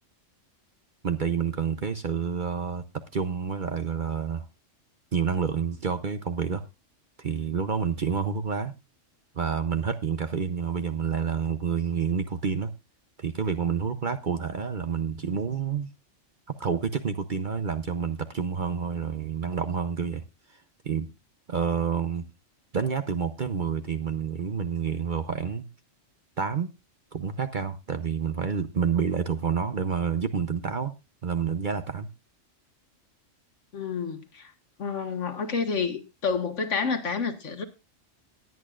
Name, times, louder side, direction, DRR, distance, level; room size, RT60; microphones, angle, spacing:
voice 1, 1.0-2.8 3.1-4.5 5.1-6.7 7.2-8.7 9.3-12.7 13.2-15.9 16.5-20.2 20.5-20.6 20.8-21.1 21.5-22.2 22.7-25.7 26.4-26.7 27.1-30.9 31.2-32.1, right 6 dB, 45° right, 0.8 m, -28 dB
voice 2, 33.7-34.5 34.8-37.6, left 5 dB, 65° left, 1.7 m, -29 dB
20.0 x 8.6 x 2.5 m
omnidirectional pair, 1.3 m